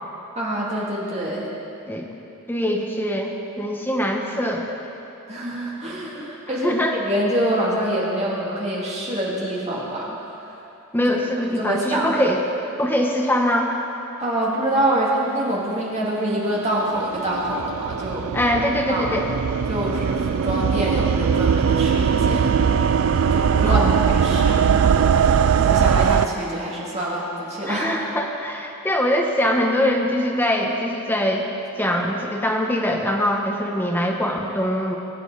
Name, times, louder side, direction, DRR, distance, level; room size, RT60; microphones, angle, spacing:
voice 1, 0.4-1.5 5.3-10.2 11.5-12.2 14.2-18.2 18.9-19.1 19.7-22.6 23.3-27.9, right 1 dB, 30° right, -5 dB, 2.2 m, -26 dB
voice 2, 2.5-4.7 6.5-7.0 10.9-12.4 12.8-13.7 18.3-19.3 23.7-24.0 24.2-24.6 27.6-31.4 31.8-34.9, equal, 10° left, 0 dB, 1.0 m, -23 dB
sound 1, 16.6-26.3, right 7 dB, 70° right, 0.3 m, -20 dB
21.0 x 9.0 x 4.0 m, 2.8 s
head